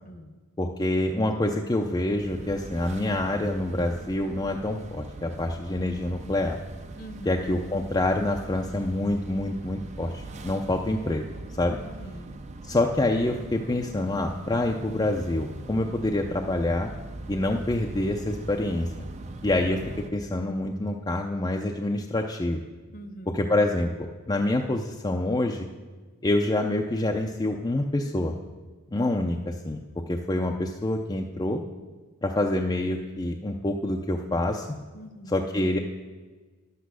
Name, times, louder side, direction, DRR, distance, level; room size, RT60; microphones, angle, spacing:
voice 1, 0.6-6.6 7.3-11.2 11.5-11.8 12.6-16.9 17.3-18.9 19.4-19.8 20.1-22.6 23.3-25.7 26.2-28.3 28.9-29.8 30.1-31.6 32.2-34.7 35.3-35.8, left 1 dB, 20° left, 2 dB, 0.5 m, -26 dB
sound 1, 2.1-20.1, right 2 dB, 30° right, 0.5 m, -41 dB
voice 2, 7.0-7.3 11.8-12.3 22.9-23.5 34.9-35.5, right 1 dB, 40° left, 9 dB, 0.9 m, -43 dB
11.0 x 8.2 x 6.2 m, 1.4 s
head